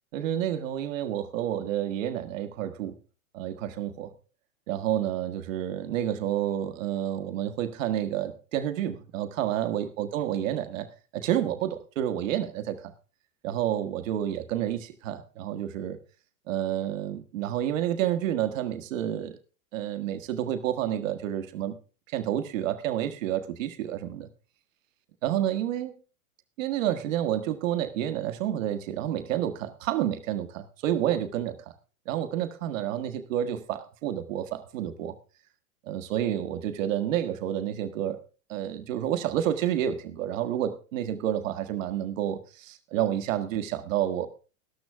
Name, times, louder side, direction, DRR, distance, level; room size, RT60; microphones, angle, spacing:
voice 1, 0.1-2.9 3.3-4.1 4.7-12.9 13.4-16.0 16.5-19.4 19.7-21.8 22.1-24.3 25.2-25.9 26.6-31.6 32.1-35.1 35.9-38.2 38.5-44.3, right 11 dB, 60° right, 9 dB, 1.6 m, -29 dB
13.5 x 12.5 x 3.5 m, 0.34 s
supercardioid pair, 160°, 43 cm